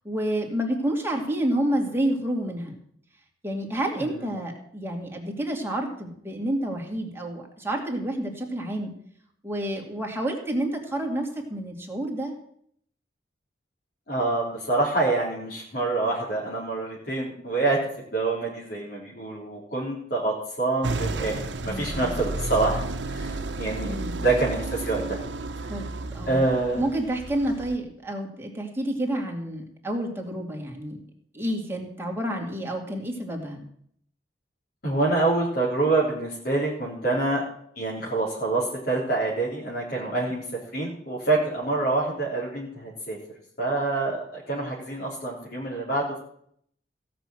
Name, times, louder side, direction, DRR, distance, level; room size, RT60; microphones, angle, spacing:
voice 1, 0.0-2.8 3.4-8.9 9.4-12.3 21.7-22.2 23.8-24.2 25.7-26.5 26.7-31.0 31.3-33.6, right 1 dB, 15° right, 0 dB, 2.3 m, -29 dB
voice 2, 3.9-4.3 14.1-25.2 25.6-25.7 26.3-26.8 34.8-37.4 37.8-40.4 40.7-43.2 43.6-46.2, right 2 dB, 60° left, -5 dB, 3.6 m, -26 dB
sound 1, 20.8-27.8, right 2 dB, 80° right, 0.9 m, -32 dB
16.0 x 6.1 x 7.7 m, 0.67 s
head